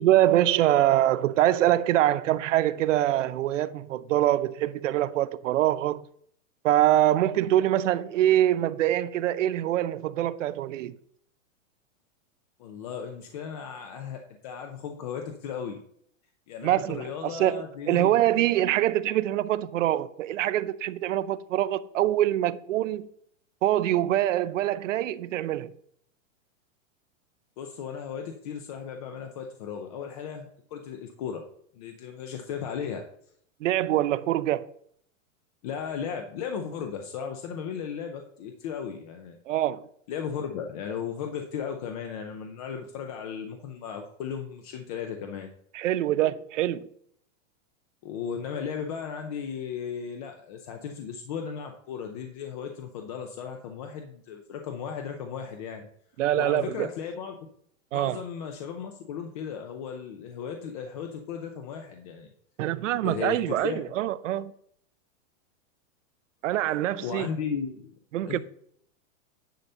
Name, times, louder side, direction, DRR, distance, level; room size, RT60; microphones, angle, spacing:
voice 1, 0.0-6.1 6.6-10.9 16.6-23.1 23.6-25.7 33.6-34.7 39.5-39.9 45.7-46.9 56.2-56.9 57.9-58.2 62.6-64.5 66.4-67.3 68.1-68.4, right 13 dB, 70° right, 0.6 m, -24 dB
voice 2, 12.6-15.8 16.5-18.1 27.6-31.4 31.7-33.1 35.6-39.4 40.1-45.5 48.0-55.8 56.3-57.4 57.9-62.3 63.0-63.8 67.0-67.9 68.2-68.4, left 7 dB, 30° left, 0.6 m, -36 dB
10.5 x 4.0 x 5.6 m
supercardioid pair, 170°, 40 cm